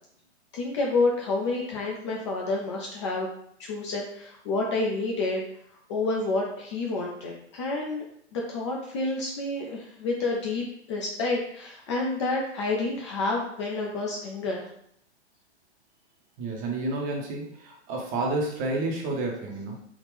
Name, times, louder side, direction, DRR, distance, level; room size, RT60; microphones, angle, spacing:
voice 1, 0.5-3.3 3.6-5.4 5.9-8.0 8.3-14.7, left 3 dB, 25° left, -1 dB, 0.4 m, -29 dB
voice 2, 16.4-19.8, right 2 dB, 25° right, 0 dB, 0.7 m, -30 dB
3.5 x 2.3 x 3.2 m, 0.70 s
figure-of-eight pair, 110°, 34 cm